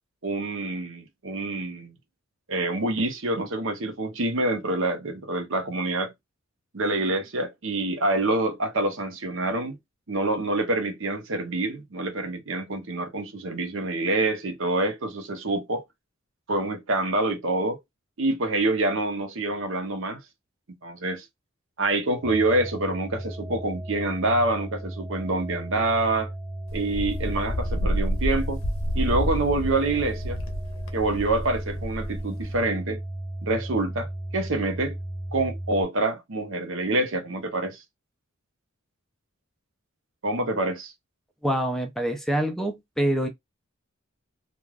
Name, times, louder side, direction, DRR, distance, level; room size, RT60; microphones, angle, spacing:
voice 1, 0.2-1.9 2.5-6.1 6.7-9.8 10.1-15.8 16.5-17.8 18.2-20.2 20.8-21.2 21.8-26.3 26.7-28.6 28.9-30.4 30.9-33.0 33.4-35.0 35.3-37.8 40.2-40.9, right 2 dB, 65° right, 0.8 m, -26 dB
sound 1, 22.2-35.8, right 1 dB, 15° right, 0.9 m, -35 dB
Wind, 26.7-32.6, equal, 70° left, 0.8 m, -29 dB
voice 2, 41.4-43.3, right 1 dB, ahead, 0.5 m, -25 dB
3.3 x 2.4 x 2.3 m
head